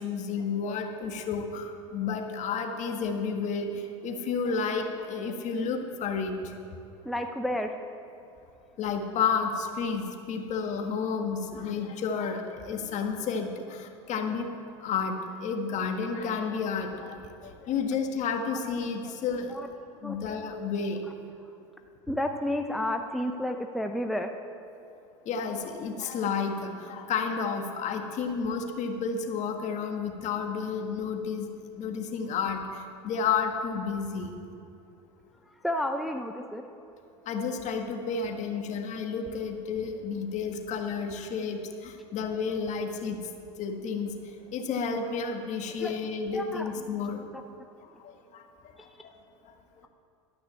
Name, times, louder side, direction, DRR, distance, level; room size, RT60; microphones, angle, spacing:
voice 1, 0.0-6.5 8.8-14.5 14.8-19.6 20.0-21.0 25.2-31.5 31.7-34.3 37.2-43.2 43.6-44.1 44.5-47.2 48.0-48.4 49.0-49.1, left 5 dB, 45° left, 4 dB, 1.5 m, -31 dB
voice 2, 7.0-7.7 19.0-19.1 19.5-19.7 20.0-20.2 22.1-24.3 35.6-36.6 45.8-45.9 46.3-47.0, left 1 dB, ahead, 4 dB, 0.6 m, -31 dB
12.5 x 6.1 x 8.5 m, 2.6 s
hypercardioid pair, 90°, 16 cm